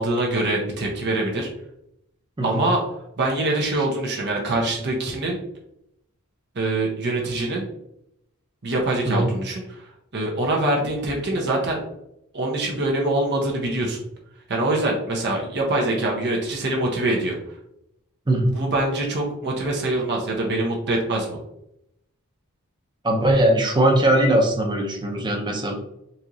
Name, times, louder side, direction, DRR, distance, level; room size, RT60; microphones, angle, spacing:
voice 1, 0.0-1.5 2.4-2.8 3.2-5.4 6.5-7.6 8.6-9.8 10.1-11.8 12.3-14.0 14.5-17.4 18.5-21.4, right 2 dB, 55° right, -1 dB, 0.7 m, -24 dB
voice 2, 23.0-25.8, right 1 dB, 20° right, -1 dB, 0.7 m, -20 dB
4.1 x 2.9 x 2.5 m, 0.79 s
head